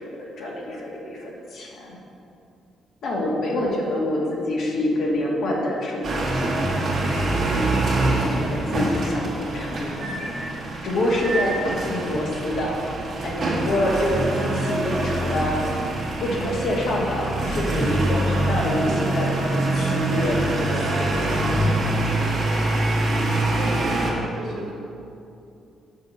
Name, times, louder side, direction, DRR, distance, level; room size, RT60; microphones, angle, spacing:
voice 1, 0.0-2.0 3.0-6.9 8.0-10.4 10.8-12.8 13.2-15.7 16.2-21.5, left 1 dB, 65° left, -3 dB, 1.9 m, -26 dB
sound 1, 6.0-24.1, right 2 dB, 55° right, 1.8 m, -24 dB
voice 2, 23.6-24.7, right 1 dB, 75° right, -3 dB, 1.9 m, -33 dB
6.5 x 5.6 x 6.7 m, 2.7 s
cardioid pair, 90°, 0 cm